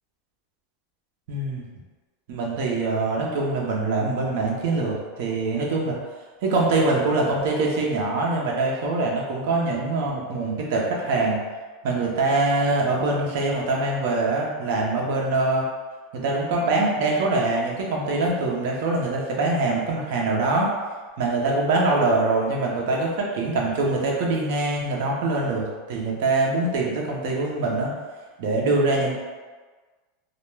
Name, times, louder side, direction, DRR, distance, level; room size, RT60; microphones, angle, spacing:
voice 1, 1.3-1.6 2.3-6.0 6.4-11.4 11.8-15.7 16.1-20.7 21.2-27.9 28.4-29.1, right 2 dB, 55° right, -2 dB, 0.5 m, -23 dB
2.1 x 2.0 x 3.1 m, 1.4 s
supercardioid pair, 175°, 0 cm